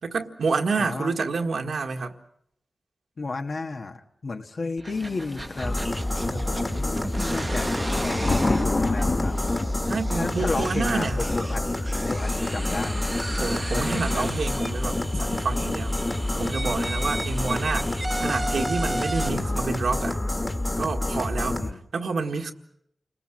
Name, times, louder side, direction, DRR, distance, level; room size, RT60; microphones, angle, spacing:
voice 1, 0.0-2.2 6.2-6.9 9.8-11.2 13.4-16.0 16.3-20.2 20.8-21.6 21.9-22.5, right 4 dB, 85° right, 1.8 m, -29 dB
voice 2, 0.8-1.1 3.2-5.8 6.3-9.4 10.1-11.6 12.1-13.0 13.7-14.3 16.9-17.0 21.6-21.8, left 3 dB, 65° left, 1.7 m, -33 dB
sound 1, 4.8-19.3, right 2 dB, 25° right, 0.9 m, -36 dB
sound 2, 4.9-20.1, left 2 dB, 45° left, 1.6 m, -33 dB
sound 3, 5.6-21.7, left 1 dB, 25° left, 2.0 m, -28 dB
30.0 x 20.5 x 6.4 m
wide cardioid pair, 70°, 0 cm